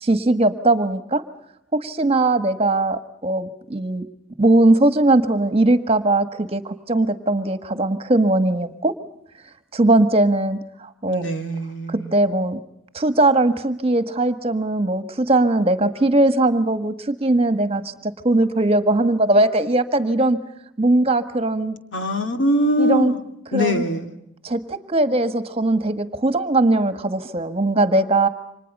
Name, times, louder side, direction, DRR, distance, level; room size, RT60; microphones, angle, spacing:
voice 1, 0.0-1.2 1.7-4.1 4.4-8.9 9.7-11.3 11.9-12.6 12.9-20.4 20.8-21.8 22.8-23.1 23.5-23.8 24.4-28.3, right 2 dB, 30° right, 9 dB, 1.6 m, -19 dB
voice 2, 11.1-12.1 21.9-23.2 23.5-24.2, equal, 85° left, 5 dB, 2.7 m, -22 dB
29.5 x 26.0 x 5.5 m, 0.78 s
head